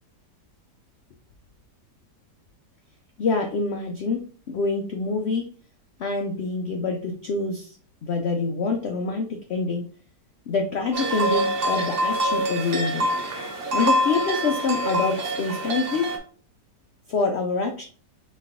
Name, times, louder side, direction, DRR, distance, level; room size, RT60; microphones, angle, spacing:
voice 1, 3.2-4.2 4.5-5.4 6.0-7.8 8.0-9.9 10.5-13.1 13.7-16.1 17.1-17.8, left 4 dB, 90° left, 3 dB, 0.5 m, -26 dB
sound 1, 10.9-16.2, right 1 dB, 60° right, 0.6 m, -25 dB
4.2 x 3.2 x 3.6 m, 0.42 s
omnidirectional pair, 1.8 m